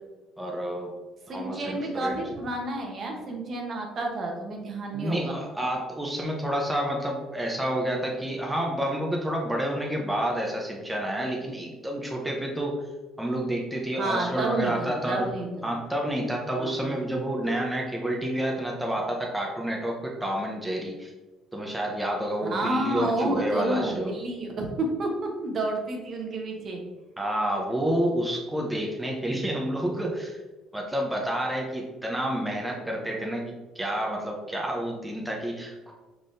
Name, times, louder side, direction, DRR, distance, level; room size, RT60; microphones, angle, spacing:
voice 1, 0.4-0.9 1.3-2.3 4.9-12.8 13.2-15.3 15.6-21.1 21.5-24.2 27.2-30.4 30.7-35.9, right 1 dB, 5° right, -1 dB, 0.7 m, -29 dB
voice 2, 1.3-5.4 14.0-15.7 16.6-16.9 22.4-26.8, right 2 dB, 45° right, 1 dB, 1.0 m, -30 dB
5.0 x 3.7 x 2.6 m, 1.2 s
cardioid pair, 100°, 0 cm